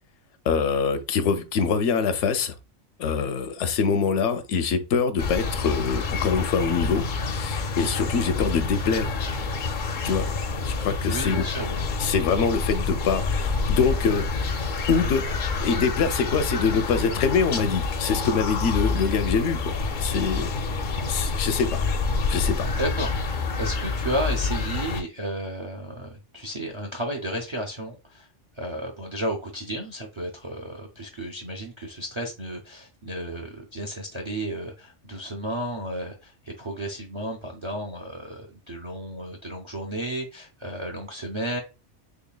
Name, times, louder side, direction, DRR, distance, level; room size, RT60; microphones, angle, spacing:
voice 1, 0.5-2.6 3.0-9.1 10.0-10.3 10.6-11.4 12.0-14.5 14.9-15.2 15.6-21.8 22.3-22.7, left 5 dB, 75° left, 0.9 m, -24 dB
sound 1, 5.2-25.0, left 4 dB, 55° left, 0.5 m, -28 dB
voice 2, 11.1-11.8 22.8-28.3 28.5-41.6, right 1 dB, 50° right, 0.3 m, -33 dB
3.8 x 3.2 x 2.2 m
omnidirectional pair, 1.2 m